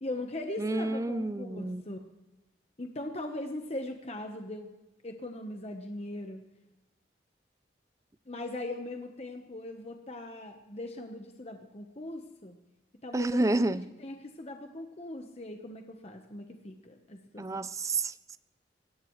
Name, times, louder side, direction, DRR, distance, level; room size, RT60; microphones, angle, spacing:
voice 1, 0.0-2.0 2.8-4.7 5.0-6.4 8.3-12.6 13.0-17.6, left 1 dB, 35° left, 1.0 m, -40 dB
voice 2, 0.6-1.8 13.1-13.9 17.4-18.4, right 2 dB, 15° right, 0.4 m, -29 dB
22.0 x 17.5 x 3.1 m
head